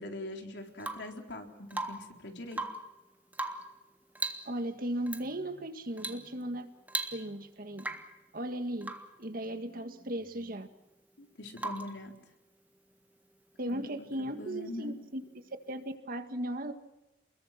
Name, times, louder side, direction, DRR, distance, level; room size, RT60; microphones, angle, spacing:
voice 1, 0.0-2.6 11.2-12.1 13.7-14.9, left 1 dB, 80° left, 2 dB, 4.0 m, -43 dB
Rain / Water tap faucet / Drip, 0.8-1.2 1.7-2.2 2.5-2.9 3.3-3.8 4.1-4.5 5.1-5.3 6.0-6.3 6.5-6.6 6.9-7.4 7.8-8.2 8.8-9.1 11.6-12.0 13.9-14.0, right 2 dB, 10° right, 1.6 m, -38 dB
voice 2, 4.5-6.7 7.1-8.0 8.3-8.9 9.2-10.7 13.6-16.7, right 1 dB, 55° right, 7 dB, 1.9 m, -37 dB
28.5 x 21.5 x 6.0 m, 0.96 s
head